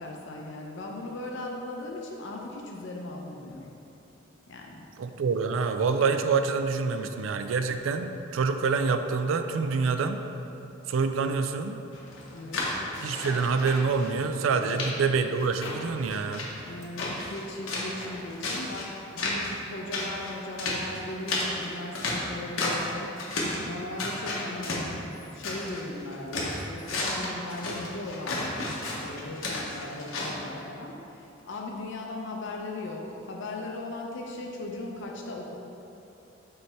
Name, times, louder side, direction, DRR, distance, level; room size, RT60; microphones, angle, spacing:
voice 1, 0.0-3.7 4.5-4.8 12.3-12.7 14.5-14.8 16.7-23.1 23.7-28.5 28.9-35.5, left 2 dB, 65° left, 0 dB, 0.6 m, -38 dB
voice 2, 5.0-10.2 10.9-11.8 13.0-16.5, right 4 dB, 75° right, 8 dB, 0.4 m, -26 dB
sound 1, 11.9-14.1 14.4-14.9 15.3-17.4 17.7-18.8 19.2-19.6 19.9-22.9 23.2-23.7 24.0-25.8 26.1-30.3, left 2 dB, 85° left, 1.1 m, -33 dB
6.8 x 3.3 x 4.4 m, 2.9 s
head